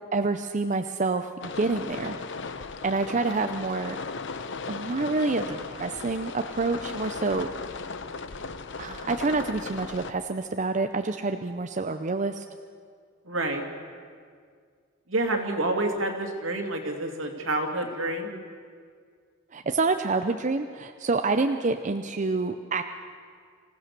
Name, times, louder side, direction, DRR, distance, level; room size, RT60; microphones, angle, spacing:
voice 1, 0.1-2.2 2.8-4.0 4.7-7.5 8.8-12.4 19.5-22.8, right 3 dB, 40° right, 7 dB, 0.6 m, -27 dB
sound 1, 1.4-10.1, left 4 dB, 65° left, 0.9 m, -37 dB
voice 2, 13.3-13.6 15.1-18.3, right 2 dB, 70° right, 3 dB, 2.6 m, -28 dB
26.0 x 16.0 x 6.8 m, 2.1 s
head